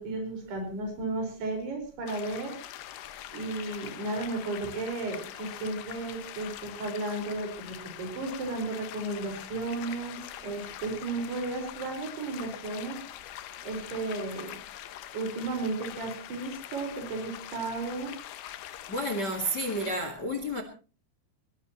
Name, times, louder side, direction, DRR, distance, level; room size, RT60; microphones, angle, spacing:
voice 1, 0.0-2.6 3.3-13.0 13.6-14.6 15.1-18.1, right 2 dB, 65° right, 7.0 m, -34 dB
sound 1, 2.1-20.0, left 12 dB, 70° left, 2.8 m, -43 dB
voice 2, 18.9-20.6, equal, 50° left, 1.2 m, -30 dB
23.0 x 18.5 x 3.0 m
omnidirectional pair, 5.0 m